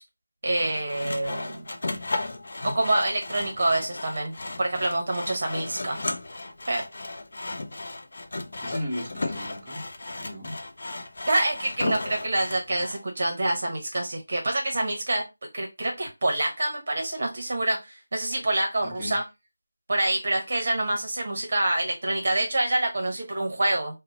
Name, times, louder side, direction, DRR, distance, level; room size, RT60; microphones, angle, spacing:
voice 1, 0.4-1.6 1.9-2.0 2.6-6.0 6.7-6.8 11.3-15.2 15.5-19.2 19.9-24.0, right 1 dB, 50° right, 0.8 m, -26 dB
Sawing, 0.6-13.0, left 2 dB, 55° left, 0.5 m, -35 dB
voice 2, 5.5-6.0 8.6-9.8 10.2-10.5 18.8-19.2, left 1 dB, 15° right, 1.0 m, -36 dB
2.8 x 2.1 x 3.8 m
figure-of-eight pair, 170°, 0 cm